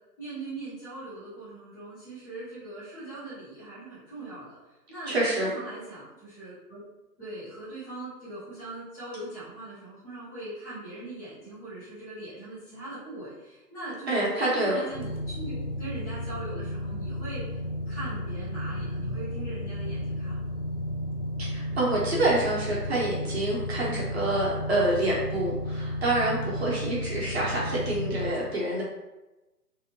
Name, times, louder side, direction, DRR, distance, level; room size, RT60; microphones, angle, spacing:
voice 1, 0.2-4.6 4.9-6.8 7.2-17.6 17.9-20.4, right 2 dB, 10° left, -12 dB, 0.8 m, -40 dB
voice 2, 5.1-5.5 14.1-14.8 21.4-28.8, right 1 dB, 40° right, -5 dB, 0.9 m, -27 dB
sound 1, 14.9-28.3, left 1 dB, 50° left, 0.5 m, -33 dB
3.3 x 2.7 x 2.7 m, 1.0 s
figure-of-eight pair, 140°, 49 cm